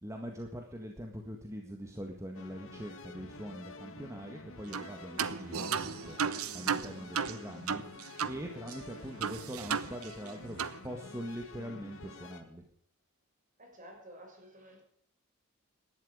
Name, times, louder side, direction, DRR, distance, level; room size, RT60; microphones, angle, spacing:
voice 1, 0.0-12.6, equal, 15° right, 2 dB, 1.8 m, -43 dB
sound 1, 2.3-12.4, left 3 dB, 65° left, 2.2 m, -49 dB
sound 2, 4.7-4.9 5.2-8.4 8.7-8.8 9.2-10.3 10.6-10.8, right 6 dB, 85° right, 1.0 m, -34 dB
voice 2, 13.6-14.8, equal, 40° right, 3 dB, 6.3 m, -52 dB
18.5 x 12.5 x 5.0 m, 0.66 s
head